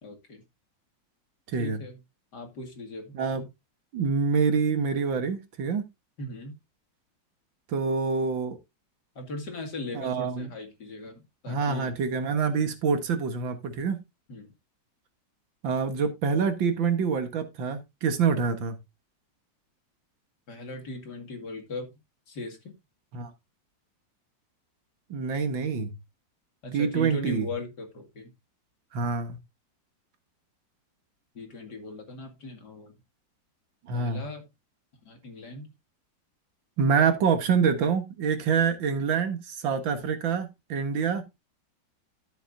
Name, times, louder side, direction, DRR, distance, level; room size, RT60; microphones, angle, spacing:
voice 1, 0.0-0.4 1.6-2.0 2.3-3.1 6.2-6.5 9.2-11.9 14.3-14.5 20.5-21.9 22.3-22.7 26.6-28.3 31.3-33.0 33.9-34.4 35.0-35.7, left 2 dB, 60° left, 2.9 m, -38 dB
voice 2, 1.5-1.8 3.1-3.5 3.9-5.8 7.7-8.6 9.9-10.5 11.5-14.0 15.6-18.8 23.1-23.3 25.1-25.9 26.7-27.5 28.9-29.4 33.9-34.2 36.8-41.2, right 5 dB, 85° right, 2.2 m, -26 dB
13.0 x 7.0 x 2.7 m
omnidirectional pair, 2.0 m